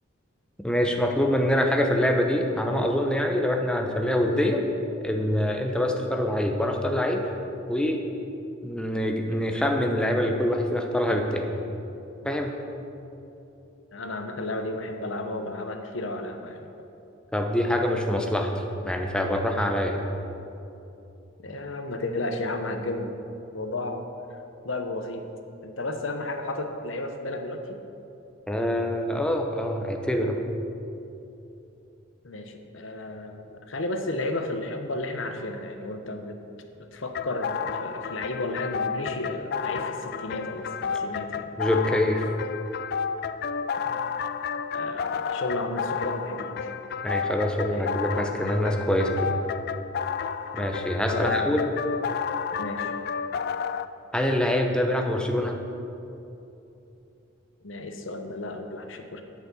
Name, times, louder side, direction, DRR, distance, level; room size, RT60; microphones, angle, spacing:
voice 1, 0.6-4.7 5.0-7.3 7.7-8.0 8.6-11.5 12.2-12.5 17.3-18.5 18.8-20.0 28.5-30.4 41.6-42.3 47.0-49.4 50.5-51.7 54.1-55.6, left 1 dB, 5° left, 2 dB, 0.8 m, -25 dB
voice 2, 13.9-16.7 21.4-23.1 23.5-24.0 24.6-25.2 25.6-27.8 32.2-36.4 36.9-41.5 43.8-44.0 44.7-46.7 47.7-47.9 51.1-51.5 52.6-52.9 57.6-59.2, left 2 dB, 70° left, 6 dB, 1.0 m, -33 dB
sound 1, 37.1-53.9, left 6 dB, 50° left, 0.4 m, -31 dB
8.4 x 8.4 x 7.0 m, 2.8 s
head